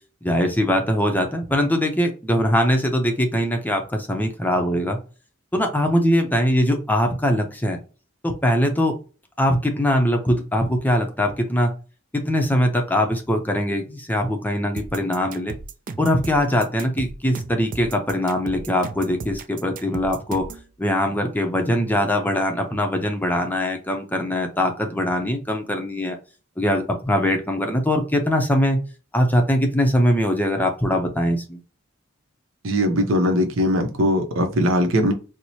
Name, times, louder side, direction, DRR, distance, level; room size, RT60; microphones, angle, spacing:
voice 1, 0.2-5.0 5.5-7.8 8.2-8.9 9.4-11.7 12.1-15.6 16.0-20.4 20.8-26.2 26.6-28.8 29.1-31.6, equal, 10° left, 0.5 m, -22 dB
sound 1, 14.8-20.7, right 4 dB, 40° right, 0.4 m, -36 dB
voice 2, 32.6-35.1, equal, 70° right, 0.7 m, -20 dB
4.5 x 2.0 x 2.7 m
head